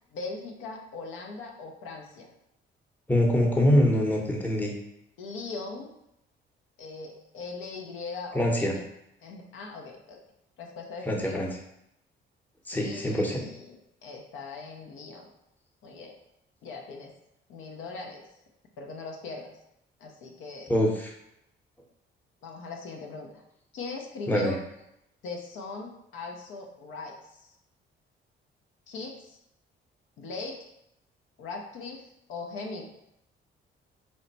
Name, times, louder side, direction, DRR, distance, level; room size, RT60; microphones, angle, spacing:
voice 1, 0.1-2.3 5.2-5.9 6.8-8.9 9.2-10.2 10.6-11.5 12.7-15.3 15.8-16.1 16.6-17.1 17.5-18.2 18.8-19.5 20.0-20.7 22.4-23.3 23.7-24.6 25.2-27.5 28.9-29.4 30.2-30.6 31.4-32.8, left 3 dB, 90° left, 1 dB, 0.6 m, -40 dB
voice 2, 3.1-4.7 8.3-8.7 11.1-11.5 12.7-13.4 20.7-21.1 24.3-24.5, left 1 dB, 10° left, -1 dB, 0.7 m, -24 dB
3.1 x 2.1 x 3.9 m, 0.80 s
cardioid pair, 90°, 20 cm